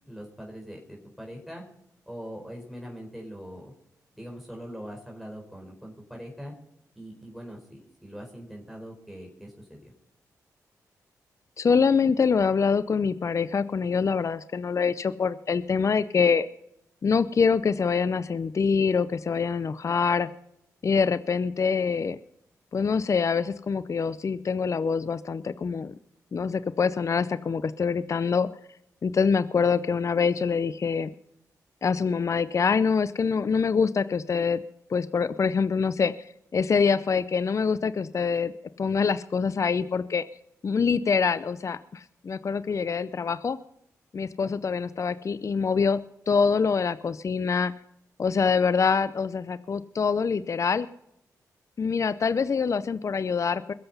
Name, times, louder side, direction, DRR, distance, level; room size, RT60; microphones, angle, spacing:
voice 1, 0.0-1.6 2.1-3.7 4.1-6.5 7.0-9.9 44.4-44.5, equal, ahead, 0 dB, 4.3 m, -42 dB
voice 2, 11.6-16.5 17.0-20.3 20.8-22.2 22.7-25.9 26.3-28.5 29.0-31.1 31.8-34.6 34.9-36.1 36.5-38.5 38.8-40.2 40.6-43.6 44.1-46.0 46.3-47.7 48.2-50.9 51.8-53.7, left 5 dB, 50° left, 15 dB, 0.5 m, -25 dB
21.5 x 7.8 x 5.6 m, 0.78 s
cardioid pair, 55°, 7 cm